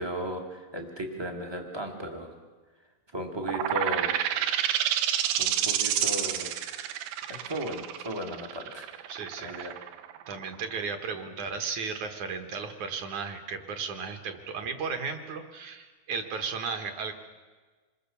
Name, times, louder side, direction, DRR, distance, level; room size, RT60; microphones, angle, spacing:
voice 1, 0.0-2.4 3.1-4.2 5.4-6.5 7.3-8.9 9.4-9.8, right 1 dB, 25° right, 3 dB, 0.6 m, -35 dB
sound 1, 3.4-10.8, right 11 dB, 80° right, 2.7 m, -29 dB
voice 2, 9.1-9.7 10.3-17.1, right 5 dB, 60° right, 6 dB, 2.4 m, -35 dB
26.5 x 21.0 x 7.0 m, 1.4 s
omnidirectional pair, 4.4 m